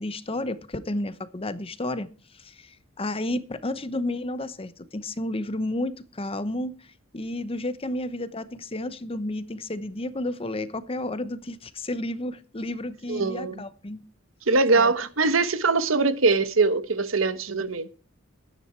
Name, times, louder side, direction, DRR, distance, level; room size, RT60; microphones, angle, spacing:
voice 1, 0.0-2.1 2.3-6.9 7.1-14.0 14.7-14.9, left 1 dB, 30° left, 0.8 m, -31 dB
voice 2, 13.1-13.6 14.5-17.9, right 3 dB, 85° right, 1.2 m, -22 dB
12.5 x 9.8 x 4.4 m
head